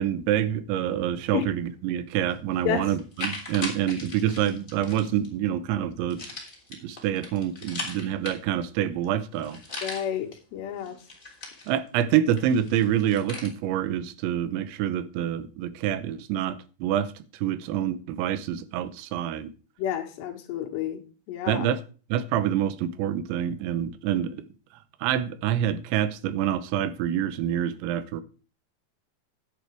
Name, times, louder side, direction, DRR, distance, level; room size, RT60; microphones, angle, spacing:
voice 1, 0.0-6.2 6.7-9.6 11.7-17.1 17.4-19.5 21.5-21.8 22.1-24.5 25.0-28.2, right 10 dB, 90° right, 3.1 m, -27 dB
sound 1, 2.3-2.4 2.9-5.3 6.1-8.7 9.0-9.1 9.3-10.3 10.8-12.0 12.4-13.5, left 2 dB, 15° left, 2.2 m, -38 dB
voice 2, 9.8-11.0 19.8-21.0 21.3-21.7, left 10 dB, 75° left, 3.5 m, -30 dB
10.5 x 8.4 x 4.6 m
omnidirectional pair, 5.2 m